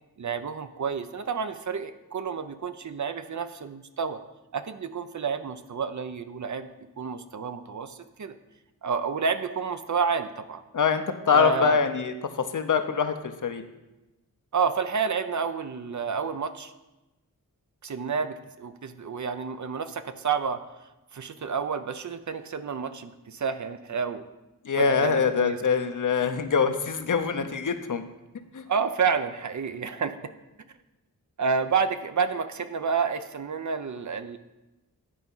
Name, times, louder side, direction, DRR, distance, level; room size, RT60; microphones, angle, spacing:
voice 1, 0.2-4.2 4.5-6.7 7.0-8.3 8.8-10.6 11.3-11.8 14.5-16.7 17.8-20.6 21.1-24.2 24.8-25.6 28.7-30.2 31.4-34.4, right 5 dB, 55° right, 10 dB, 0.6 m, -29 dB
voice 2, 10.7-12.1 12.5-13.1 13.4-13.6 24.7-28.0 28.5-28.6, left 6 dB, 60° left, 8 dB, 0.8 m, -24 dB
10.0 x 4.5 x 5.5 m, 1.0 s
wide cardioid pair, 70°, 36 cm